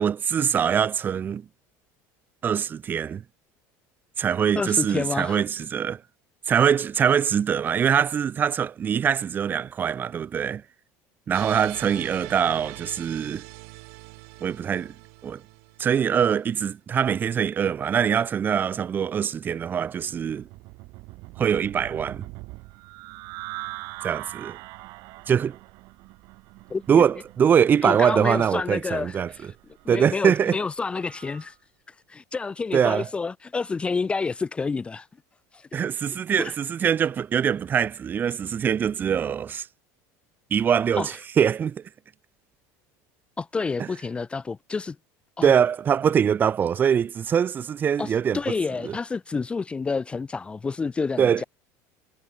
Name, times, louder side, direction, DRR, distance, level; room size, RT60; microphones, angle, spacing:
voice 1, 0.0-1.4 2.4-3.2 4.2-6.0 6.5-10.6 11.3-13.4 14.4-14.9 15.2-15.4 15.8-20.5 21.4-22.3 24.0-24.6 25.3-25.6 26.9-29.3 29.9-30.6 32.7-33.1 35.7-39.7 40.5-41.8 43.8-43.9 45.4-48.5 48.8-49.0 51.2-51.4, right 8 dB, 25° right, 0.9 m, -23 dB
voice 2, 4.6-5.4 26.7-27.0 27.8-29.5 29.8-31.5 32.1-35.1 35.5-35.7 36.4-36.5 40.9-41.1 43.4-45.0 45.4-45.5 48.0-51.4, left 4 dB, 15° left, 0.6 m, -29 dB
sound 1, 11.3-16.4, right 32 dB, 80° right, 2.7 m, -42 dB
sound 2, 19.8-31.5, right 23 dB, 65° right, 2.4 m, -43 dB
cardioid pair, 150°, 7 cm